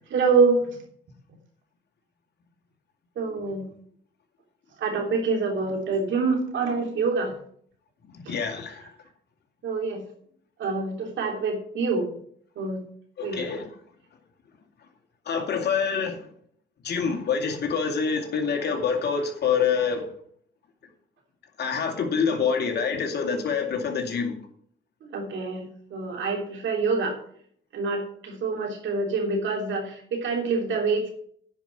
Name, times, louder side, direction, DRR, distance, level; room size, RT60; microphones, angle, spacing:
voice 1, 0.1-0.6 3.2-3.7 4.8-7.3 8.3-8.4 9.6-10.0 10.6-12.1 12.6-12.8 13.2-13.4 23.4-23.5 25.1-25.6 25.9-27.2 27.7-31.1, right 4 dB, 70° right, 3.2 m, -26 dB
voice 2, 8.3-8.8 13.2-13.7 15.3-16.2 16.8-20.0 21.6-24.3, left 6 dB, 55° left, 2.4 m, -26 dB
10.0 x 5.4 x 8.0 m
cardioid pair, 90°, 20 cm